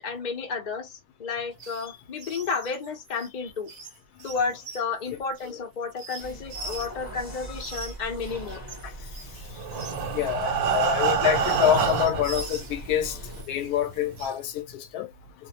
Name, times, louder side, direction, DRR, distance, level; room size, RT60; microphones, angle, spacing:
voice 1, 0.0-3.7 4.2-8.6 10.7-10.8, left 5 dB, 45° left, 0.6 m, -32 dB
sound 1, 1.5-1.9 2.2-7.1 7.5-12.8 13.2-14.5, right 3 dB, 50° right, 0.8 m, -43 dB
sound 2, 6.2-13.4, right 1 dB, 15° left, 0.9 m, -41 dB
Breathing, 9.5-12.4 13.2-13.3 13.6-13.7 14.2-14.3, right 7 dB, 75° right, 1.2 m, -26 dB
voice 2, 10.1-13.2 13.5-15.1, left 10 dB, 80° left, 1.1 m, -26 dB
2.6 x 2.0 x 2.7 m
omnidirectional pair, 1.6 m